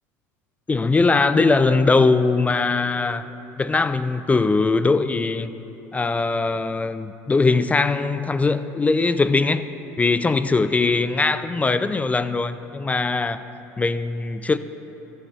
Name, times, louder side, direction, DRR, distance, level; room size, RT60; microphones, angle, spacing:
voice 1, 0.7-3.2 3.6-5.5 5.9-9.6 10.0-13.4 13.8-14.6, left 3 dB, 20° left, 12 dB, 0.3 m, -20 dB
13.0 x 12.0 x 2.7 m, 2.9 s
hypercardioid pair, 80°, 8 cm